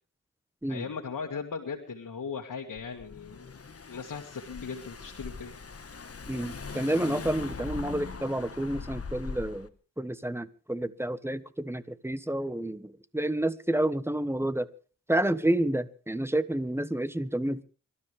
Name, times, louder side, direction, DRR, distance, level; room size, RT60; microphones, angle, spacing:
voice 1, 0.7-3.5 3.9-5.5, left 5 dB, 75° left, 1 dB, 2.0 m, -38 dB
Car / Engine, 2.8-9.7, left 4 dB, 45° left, 1.4 m, -41 dB
voice 2, 6.3-9.7 10.0-14.7 15.1-17.6, right 1 dB, 10° right, 14 dB, 1.3 m, -29 dB
26.0 x 13.0 x 3.4 m, 0.37 s
cardioid pair, 55°, 32 cm